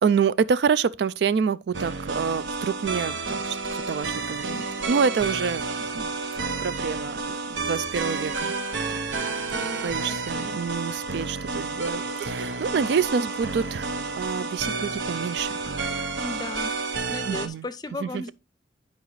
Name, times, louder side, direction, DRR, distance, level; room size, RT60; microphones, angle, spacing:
voice 1, 0.0-5.6 5.9-8.5 9.8-15.6 17.2-17.7 18.0-18.3, right 6 dB, 60° right, 0.3 m, -27 dB
sound 1, 1.7-17.5, right 3 dB, 80° right, 0.9 m, -30 dB
voice 2, 9.5-10.6 16.2-16.7 17.1-18.3, left 2 dB, 20° left, 0.5 m, -36 dB
10.5 x 5.0 x 3.1 m
head